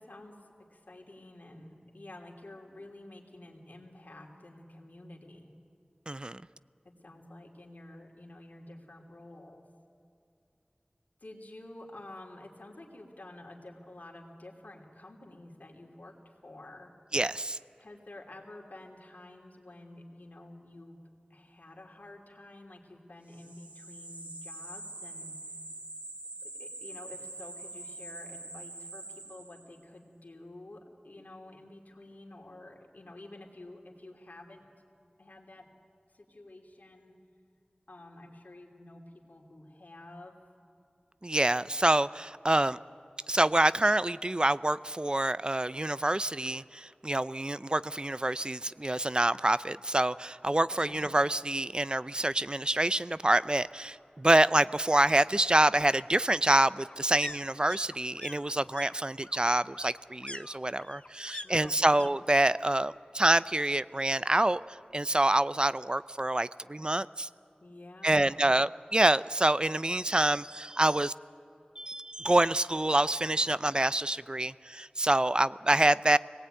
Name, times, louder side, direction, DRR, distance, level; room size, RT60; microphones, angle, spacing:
voice 1, 0.0-5.5 6.8-9.7 11.2-16.9 17.8-21.0 21.3-25.4 26.4-34.6 35.2-35.7 36.1-37.2 37.9-40.3 50.7-51.1 61.4-62.1 67.6-68.5, left 1 dB, 80° left, 0 dB, 3.2 m, -50 dB
voice 2, 6.1-6.4 17.1-17.6 41.2-42.8 43.3-67.3 68.0-71.1 71.8-76.2, right 1 dB, 30° right, 16 dB, 0.5 m, -27 dB
sound 1, 23.3-29.8, right 2 dB, 65° right, 2.3 m, -44 dB
sound 2, 51.7-51.8 52.0-53.0 54.3-62.1 62.4-62.9 63.2-64.3 64.6-64.7, left 2 dB, 45° left, 0.8 m, -47 dB
25.0 x 19.5 x 9.1 m, 2.7 s
wide cardioid pair, 45°, 3 cm